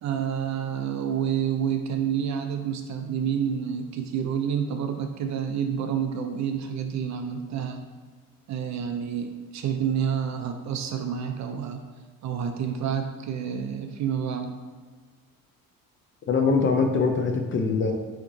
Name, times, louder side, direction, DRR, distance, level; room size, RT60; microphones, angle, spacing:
voice 1, 0.0-7.8 8.5-11.8 12.2-14.5, right 8 dB, 50° right, 6 dB, 0.5 m, -29 dB
voice 2, 16.3-17.9, left 4 dB, 35° left, 3 dB, 0.5 m, -23 dB
5.9 x 2.9 x 2.6 m, 1.5 s
cardioid pair, 140°, 35 cm